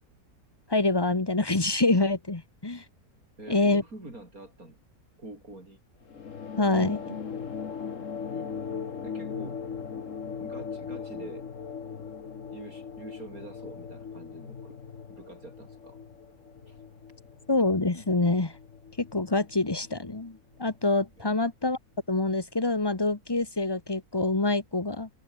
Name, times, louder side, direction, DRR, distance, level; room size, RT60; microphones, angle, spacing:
voice 1, 0.7-2.8 3.5-3.8 6.6-7.2 17.5-18.6 19.0-21.8 22.1-25.1, left 2 dB, 15° left, 1.3 m, -26 dB
voice 2, 3.4-4.8 5.2-5.8 8.3-9.6 10.4-11.5 12.5-14.8 15.1-16.0 16.7-16.8 21.2-21.4, right 2 dB, 65° right, 7.6 m, -46 dB
sound 1, 6.1-20.9, left 6 dB, 55° left, 1.8 m, -39 dB
omnidirectional pair, 1.6 m